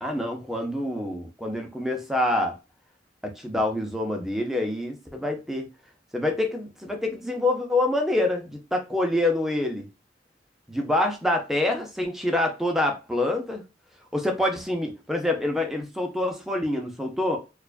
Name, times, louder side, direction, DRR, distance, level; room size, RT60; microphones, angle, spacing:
voice 1, 0.0-2.5 3.2-5.7 6.1-9.9 10.7-13.6 14.1-17.4, left 1 dB, ahead, 0.6 m, -26 dB
4.5 x 2.4 x 2.4 m
head